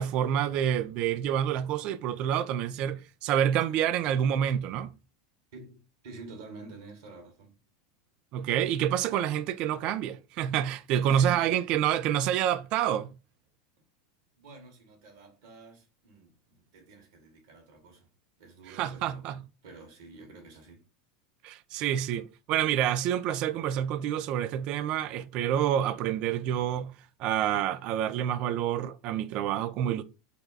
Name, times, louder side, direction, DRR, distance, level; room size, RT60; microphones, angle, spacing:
voice 1, 0.0-4.9 8.3-13.1 18.8-19.4 21.4-26.9 27.2-30.0, right 10 dB, 45° right, 0.4 m, -28 dB
voice 2, 5.5-7.6 11.0-11.6 14.4-18.1 18.4-19.3 19.6-20.8, right 3 dB, 65° right, 1.4 m, -49 dB
4.1 x 2.2 x 3.9 m
figure-of-eight pair, 85°, 2 cm